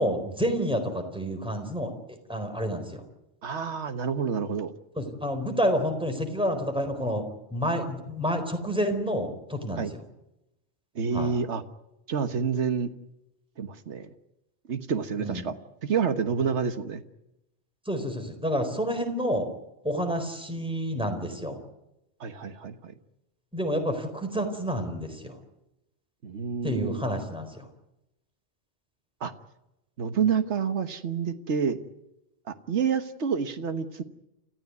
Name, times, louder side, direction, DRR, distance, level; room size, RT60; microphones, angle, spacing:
voice 1, 0.0-1.9 2.3-3.0 5.0-7.2 7.5-9.8 11.1-11.3 15.2-15.5 17.9-19.5 19.8-21.6 23.5-25.3 26.6-27.7, equal, 5° right, 5 dB, 4.2 m, -29 dB
voice 2, 3.4-4.7 9.8-9.9 10.9-11.6 12.1-12.9 13.6-14.1 14.7-15.5 15.8-17.0 22.2-22.9 26.2-27.0 29.2-29.3 30.0-31.8 32.5-34.0, right 6 dB, 85° right, 9 dB, 1.5 m, -28 dB
29.5 x 14.5 x 9.5 m, 0.91 s
omnidirectional pair, 1.1 m